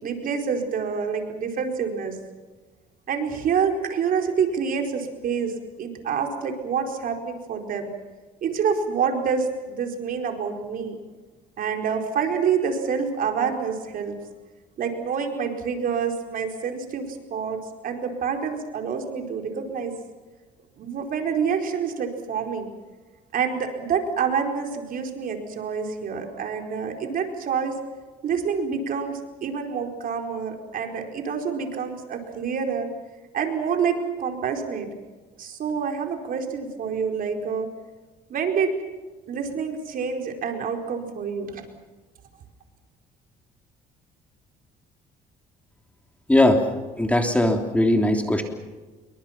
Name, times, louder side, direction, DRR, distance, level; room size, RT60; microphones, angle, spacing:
voice 1, 0.0-2.2 3.1-7.9 8.4-11.0 11.6-14.2 14.8-19.9 20.8-22.7 23.3-27.7 28.2-32.9 33.3-34.9 35.4-37.7 38.3-38.8 39.3-41.6, right 6 dB, 55° right, 4 dB, 4.6 m, -27 dB
voice 2, 46.3-46.6 47.0-48.4, left 1 dB, 10° left, 4 dB, 3.1 m, -19 dB
28.0 x 23.5 x 5.9 m, 1.3 s
cardioid pair, 110°, 17 cm